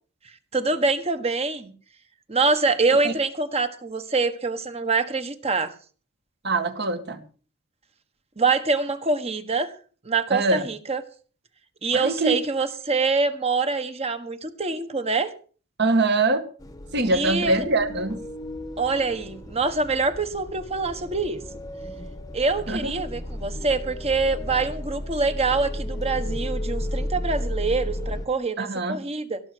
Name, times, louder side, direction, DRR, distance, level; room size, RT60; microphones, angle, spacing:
voice 1, 0.5-1.7 2.3-5.7 8.4-9.7 10.0-11.0 11.8-15.3 17.1-17.6 18.8-21.4 22.3-29.4, right 3 dB, 30° right, 9 dB, 1.4 m, -25 dB
voice 2, 6.4-7.2 10.3-10.7 11.9-12.4 15.8-16.5 16.9-18.2 22.7-22.9 28.6-29.0, right 2 dB, 50° right, 8 dB, 2.0 m, -23 dB
sound 1, 16.6-28.3, left 1 dB, 15° left, 1.2 m, -33 dB
17.0 x 7.1 x 8.0 m, 0.40 s
head